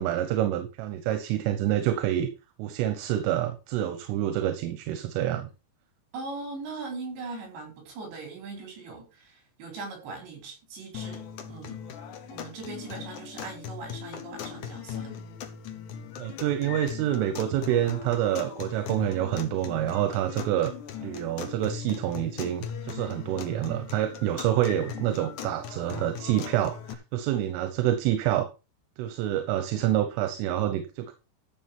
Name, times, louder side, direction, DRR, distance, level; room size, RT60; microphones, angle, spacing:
voice 1, 0.0-2.3 2.6-5.5 16.2-20.7 21.0-28.5 29.0-31.1, right 12 dB, 85° right, 3.6 m, -27 dB
voice 2, 6.1-12.0 12.3-15.2, right 3 dB, 60° right, 6.4 m, -40 dB
sound 1, 10.9-26.9, left 8 dB, 75° left, 1.8 m, -39 dB
12.5 x 7.5 x 4.4 m
omnidirectional pair, 5.7 m